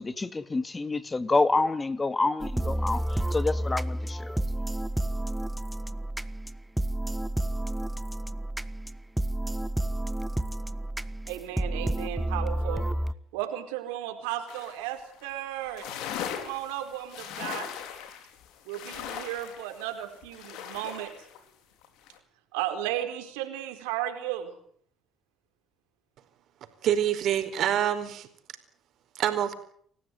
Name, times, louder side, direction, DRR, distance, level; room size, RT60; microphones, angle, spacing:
voice 1, 0.0-4.3, left 3 dB, 25° left, 13 dB, 2.3 m, -28 dB
sound 1, 2.4-13.1, right 1 dB, 5° right, 1.5 m, -30 dB
voice 2, 11.3-12.9 13.3-15.9 16.4-17.7 18.7-21.1 22.5-24.5, right 12 dB, 85° right, 7 dB, 4.4 m, -34 dB
sound 2, 14.5-14.9 15.2-15.3 15.6-21.4 21.8-22.2, left 9 dB, 75° left, 4.2 m, -39 dB
voice 3, 26.8-28.3 29.1-29.5, right 10 dB, 65° right, 9 dB, 4.7 m, -26 dB
28.5 x 15.5 x 9.4 m, 0.63 s
hypercardioid pair, 60°, 0 cm